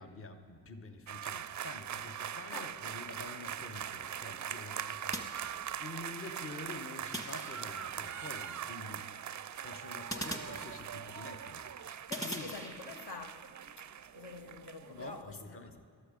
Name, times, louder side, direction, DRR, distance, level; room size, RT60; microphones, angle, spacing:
voice 1, 0.0-9.1 9.6-12.6 14.9-15.8, left 2 dB, 25° left, 1.0 m, -48 dB
sound 1, 1.1-15.2, right 9 dB, 40° right, 0.4 m, -42 dB
voice 2, 3.2-3.5 4.3-4.6 11.9-13.5 13.8-15.8, left 3 dB, 55° left, 1.1 m, -47 dB
Silenced Sniper Rifle, 5.1-6.0 7.1-8.0 10.1-11.2 12.1-13.2, right 1 dB, 5° left, 1.5 m, -43 dB
12.5 x 12.0 x 5.1 m
supercardioid pair, 45°, 48 cm